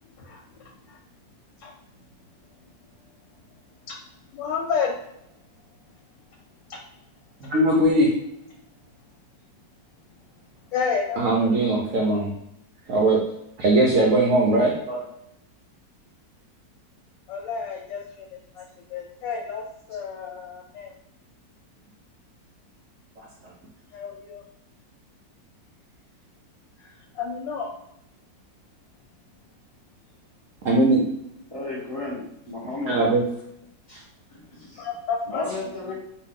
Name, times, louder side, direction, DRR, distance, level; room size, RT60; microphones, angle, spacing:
voice 1, 0.2-1.0 1.6-1.7 3.9-4.0 4.3-4.9 6.7-6.8 7.4-7.5 10.7-11.5 17.3-20.9 23.9-24.4 26.8-27.7 34.8-35.4 35.9-36.0, left 6 dB, 90° left, 0 dB, 1.3 m, -31 dB
voice 2, 7.5-8.1 11.2-12.3 12.9-13.2 13.6-15.0 23.2-23.3 30.6-31.0 32.9-33.2, right 2 dB, 65° right, -2 dB, 0.8 m, -20 dB
voice 3, 31.5-33.0 33.9-34.0 34.3-34.8 35.3-35.9, left 2 dB, 30° left, -5 dB, 0.7 m, -33 dB
3.0 x 2.5 x 3.6 m, 0.79 s
omnidirectional pair, 1.9 m